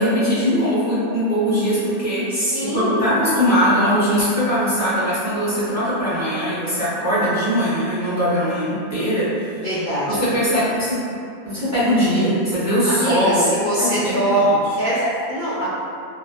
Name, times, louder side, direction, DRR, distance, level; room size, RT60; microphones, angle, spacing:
voice 1, 0.0-2.5 2.7-9.6 10.1-11.0 11.4-13.4 13.8-14.6 14.9-15.1 15.6-15.7, equal, 20° right, -14 dB, 0.4 m, -20 dB
voice 2, 2.3-3.1 9.6-10.4 12.9-14.4 14.8-15.0 15.3-15.7, right 1 dB, 85° left, -12 dB, 0.4 m, -23 dB
2.5 x 2.2 x 2.5 m, 2.5 s
omnidirectional pair, 1.5 m